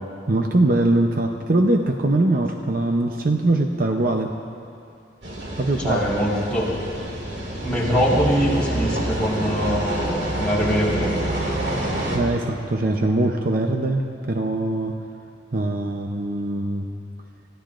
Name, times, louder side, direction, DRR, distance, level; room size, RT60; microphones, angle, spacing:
voice 1, 0.3-4.4 5.6-6.0 12.1-15.0 15.5-16.9, right 2 dB, 50° right, 3 dB, 0.7 m, -22 dB
sound 1, 5.2-12.2, right 1 dB, 70° right, 2.5 m, -27 dB
voice 2, 5.8-6.7 7.6-11.1, equal, 5° left, -8 dB, 4.4 m, -23 dB
30.0 x 15.0 x 2.5 m, 2.6 s
head